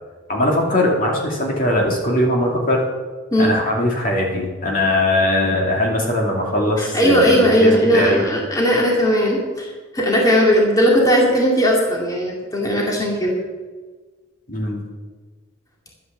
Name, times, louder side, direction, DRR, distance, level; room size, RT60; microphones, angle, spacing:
voice 1, 0.3-2.8 3.4-8.2 14.5-14.8, left 1 dB, 40° left, -2 dB, 2.6 m, -20 dB
voice 2, 6.8-13.4, equal, 15° left, -2 dB, 2.4 m, -17 dB
11.5 x 9.9 x 7.0 m, 1.4 s
head